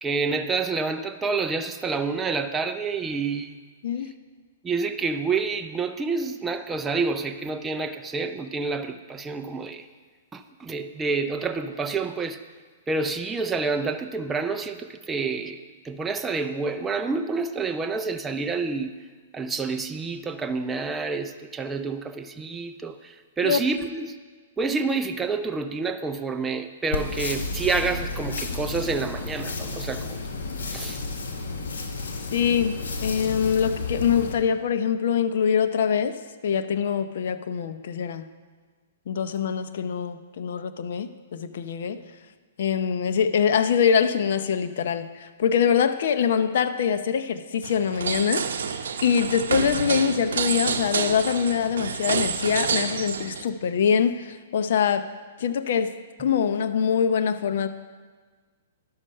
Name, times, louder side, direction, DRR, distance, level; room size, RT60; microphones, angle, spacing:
voice 1, 0.0-3.6 4.0-4.1 4.6-9.9 10.3-12.4 12.9-18.9 19.3-24.2 24.6-30.2 30.7-31.0, right 4 dB, 10° right, 7 dB, 0.4 m, -28 dB
sound 1, 26.9-34.3, left 3 dB, 80° left, 1.4 m, -32 dB
voice 2, 32.3-36.2 36.4-38.2 39.1-42.0 42.6-48.4 49.0-55.1 55.4-55.9 56.2-57.7, left 7 dB, 65° left, 10 dB, 0.6 m, -24 dB
sound 2, 47.6-53.4, right 6 dB, 80° right, 0.7 m, -28 dB
11.5 x 6.5 x 5.5 m, 1.5 s
hypercardioid pair, 140°, 0 cm